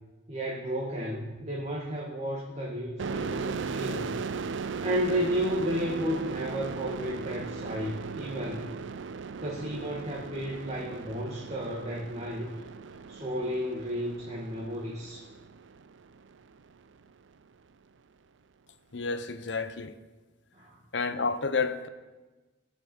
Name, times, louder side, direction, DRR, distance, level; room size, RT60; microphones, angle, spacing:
voice 1, 0.3-4.2 4.8-8.7 9.4-12.6 13.1-15.3 20.5-20.8, equal, 35° right, 1.8 m, -33 dB
sound 1, 3.0-16.4, right 5 dB, 70° right, 0.5 m, -38 dB
voice 2, 18.9-20.0 20.9-21.9, left 4 dB, 65° left, 0.9 m, -30 dB
21.0 x 7.3 x 5.5 m
head